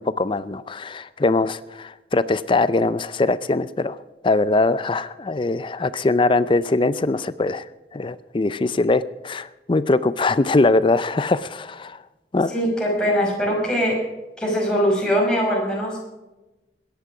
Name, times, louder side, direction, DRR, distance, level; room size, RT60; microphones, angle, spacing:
voice 1, 0.0-4.0 4.2-7.6 7.9-12.0 12.3-12.5, left 2 dB, 30° left, 15 dB, 0.5 m, -21 dB
voice 2, 12.5-14.0 14.4-16.0, equal, 5° left, -3 dB, 5.4 m, -21 dB
21.5 x 10.5 x 4.9 m, 1.0 s
head